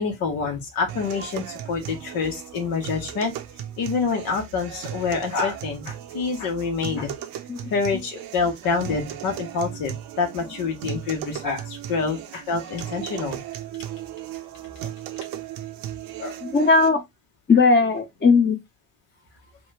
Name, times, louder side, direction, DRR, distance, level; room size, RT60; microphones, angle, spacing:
voice 1, 0.0-3.3 3.8-7.1 7.7-13.4 14.8-14.9 16.2-16.4, left 4 dB, 75° left, 1.1 m, -27 dB
sound 1, 0.9-16.9, right 11 dB, 70° right, 0.6 m, -36 dB
voice 2, 16.4-17.0 17.5-18.6, left 4 dB, 30° left, 1.0 m, -18 dB
3.0 x 2.2 x 3.2 m
hypercardioid pair, 60°, 35 cm